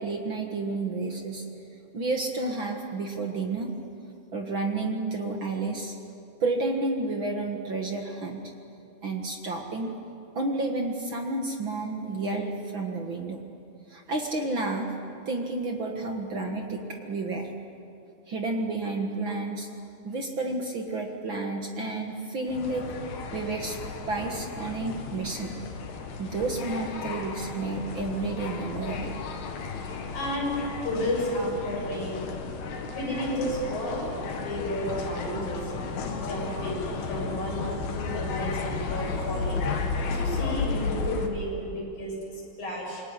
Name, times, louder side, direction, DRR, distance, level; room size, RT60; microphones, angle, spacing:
voice 1, 0.0-1.4 1.9-3.7 4.3-5.9 6.4-8.5 9.0-9.9 10.3-13.4 13.9-14.9 15.2-17.5 18.3-19.7 20.0-22.8 23.3-23.8 24.1-25.5 26.2-29.2, right 3 dB, 55° right, 2 dB, 1.3 m, -31 dB
sound 1, 22.5-41.3, left 4 dB, 75° left, 3.9 m, -33 dB
voice 2, 29.6-32.3 32.9-34.0 34.3-35.7 36.1-39.7 40.1-43.0, equal, 45° left, -2 dB, 8.9 m, -32 dB
26.5 x 22.5 x 9.9 m, 2.7 s
omnidirectional pair, 4.7 m